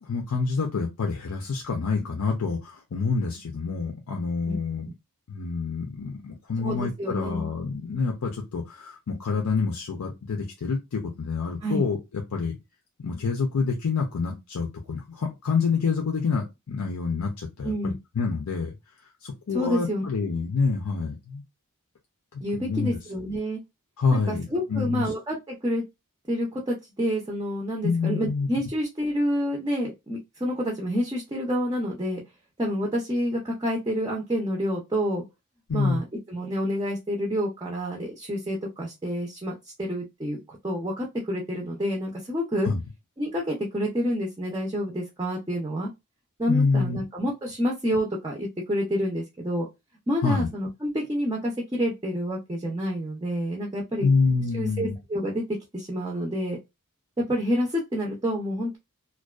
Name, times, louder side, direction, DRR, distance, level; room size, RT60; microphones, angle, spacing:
voice 1, 0.0-4.9 5.3-12.0 12.3-12.6 13.0-18.7 19.2-21.4 22.3-23.0 24.0-24.4 24.7-25.0 27.8-28.5 35.7-36.0 42.7-42.8 46.5-47.0 50.2-50.5 54.0-55.0, left 4 dB, 85° left, 1 dB, 0.5 m, -27 dB
voice 2, 6.6-7.5 11.6-11.9 17.6-18.0 19.5-20.0 22.4-23.6 24.1-25.8 26.3-32.2 32.6-35.2 35.7-42.7 43.2-45.9 46.4-49.7 50.1-54.1 54.5-55.4 55.7-56.6 57.2-58.8, equal, 15° right, -1 dB, 0.4 m, -28 dB
2.5 x 2.2 x 2.3 m, 0.22 s
head